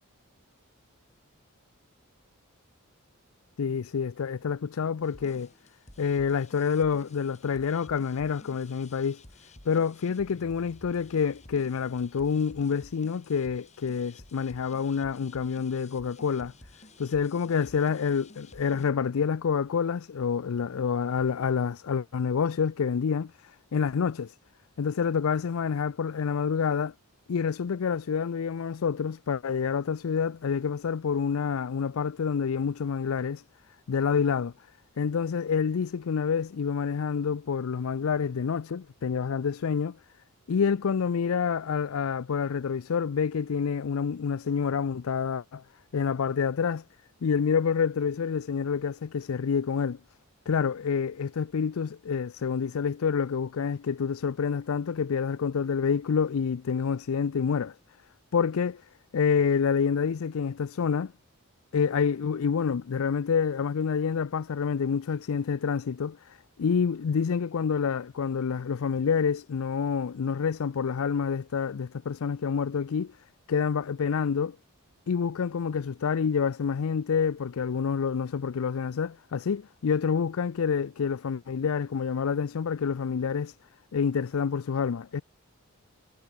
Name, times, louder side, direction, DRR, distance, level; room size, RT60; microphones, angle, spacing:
voice 1, 3.6-5.5 6.0-9.2 9.7-16.5 17.0-24.3 24.8-26.9 27.3-33.4 33.9-34.5 35.0-40.0 40.5-45.6 45.9-46.8 47.2-50.0 50.5-57.8 58.3-58.8 59.1-61.1 61.7-73.1 73.5-74.6 75.1-83.5 83.9-85.2, left 6 dB, 70° left, 0.4 m, -28 dB
sound 1, 5.0-18.9, left 2 dB, 30° left, 7.6 m, -53 dB
head